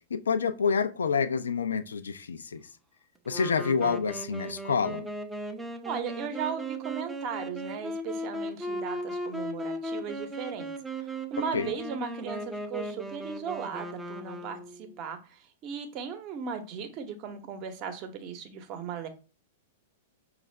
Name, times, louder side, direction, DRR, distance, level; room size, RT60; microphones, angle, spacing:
voice 1, 0.1-2.6 3.3-5.1 11.5-11.7, left 6 dB, 80° left, 0.4 m, -28 dB
Wind instrument woodwind instrument, 3.3-15.0, right 1 dB, 10° right, 0.5 m, -37 dB
voice 2, 5.8-10.7 10.9-19.1, right 6 dB, 40° right, 0.8 m, -37 dB
5.4 x 2.4 x 3.2 m
hypercardioid pair, 105°, 0 cm